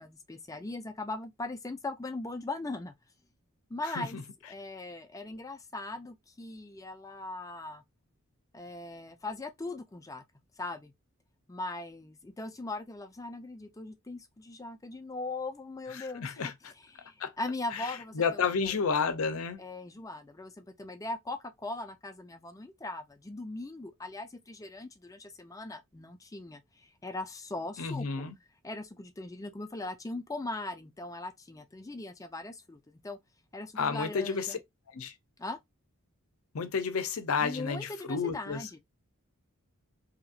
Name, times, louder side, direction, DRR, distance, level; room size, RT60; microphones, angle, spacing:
voice 1, 0.0-2.9 3.7-4.2 4.5-7.8 8.5-10.2 10.6-10.9 11.5-16.4 16.9-18.7 19.6-28.2 28.6-33.2 33.5-34.6 35.4-35.6 37.4-38.8, left 2 dB, 15° left, 0.4 m, -40 dB
voice 2, 3.8-4.2 15.9-16.5 17.2-17.3 17.7-19.6 27.8-28.3 33.8-34.6 34.9-35.1 36.5-38.7, left 5 dB, 75° left, 0.6 m, -31 dB
2.8 x 2.5 x 2.7 m
head